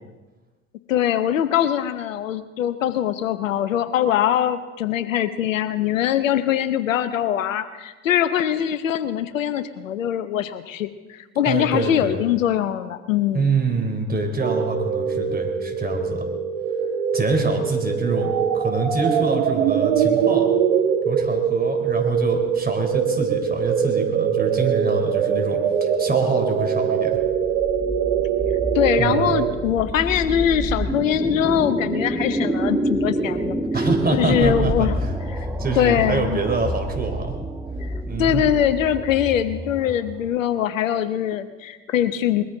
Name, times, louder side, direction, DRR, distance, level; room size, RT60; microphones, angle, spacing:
voice 1, 0.9-13.6 28.7-33.9 34.1-35.0 35.8-36.4 38.2-42.4, left 10 dB, 85° left, 13 dB, 0.9 m, -22 dB
voice 2, 11.5-12.2 13.3-16.3 17.1-20.5 21.0-27.2 29.0-29.5 33.7-37.4 38.1-38.4, right 3 dB, 25° right, 3 dB, 3.5 m, -25 dB
sound 1, 14.4-29.5, right 8 dB, 75° right, 1.3 m, -22 dB
sound 2, 27.1-40.3, right 1 dB, 10° right, 1.8 m, -27 dB
21.0 x 14.5 x 3.9 m, 1.2 s
hypercardioid pair, 60°, 38 cm